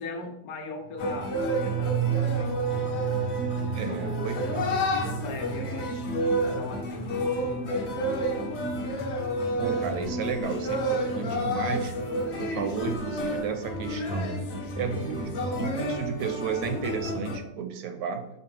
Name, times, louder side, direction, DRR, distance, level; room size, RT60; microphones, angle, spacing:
voice 1, 0.0-1.3 1.6-2.6 3.8-8.5, left 2 dB, 75° left, 3 dB, 1.1 m, -39 dB
sound 1, 0.8-10.2 10.5-10.6, right 9 dB, 25° left, 0.3 m, -34 dB
sound 2, 1.0-17.4, equal, 60° left, 0.8 m, -30 dB
voice 2, 3.7-4.7 9.6-12.0 12.4-14.5 14.8-18.3, right 6 dB, 85° right, 7 dB, 1.1 m, -33 dB
4.9 x 2.8 x 3.2 m, 0.86 s
omnidirectional pair, 1.6 m